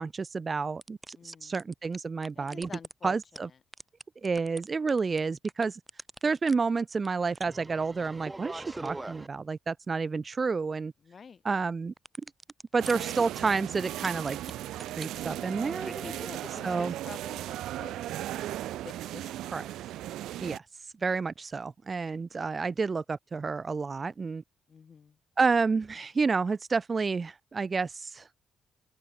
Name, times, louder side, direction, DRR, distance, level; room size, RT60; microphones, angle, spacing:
voice 1, 0.0-2.7 3.0-3.5 4.2-5.8 6.2-10.9 11.4-11.9 12.7-14.4 15.0-16.0 16.6-16.9 19.5-19.6 20.4-20.6 21.0-24.4 25.4-28.3, right 4 dB, 35° right, 0.4 m, -30 dB
sound 1, 0.8-2.0 2.2-2.9 3.2-3.4 3.7-5.2 5.5-6.5 6.8-6.9 7.1-7.2 7.3-9.3 12.0-13.1 14.0-14.5 14.8-16.3, right 2 dB, 15° right, 2.8 m, -42 dB
voice 2, 1.1-1.6 2.4-3.6 11.0-11.4 12.9-13.0 16.0-19.5 24.7-25.2, left 6 dB, 45° left, 3.0 m, -49 dB
sound 2, 12.8-20.6, right 14 dB, 85° right, 0.9 m, -37 dB
open air
cardioid pair, 90°, 0 cm